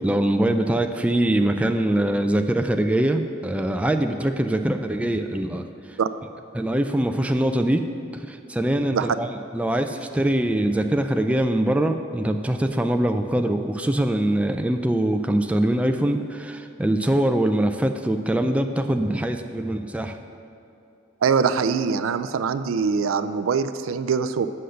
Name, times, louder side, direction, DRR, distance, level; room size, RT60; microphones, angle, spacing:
voice 1, 0.0-5.7 6.5-7.8 8.1-20.2, right 1 dB, 5° right, 5 dB, 0.3 m, -23 dB
voice 2, 21.2-24.5, right 6 dB, 85° right, 12 dB, 0.4 m, -23 dB
7.7 x 6.5 x 6.5 m, 2.6 s
head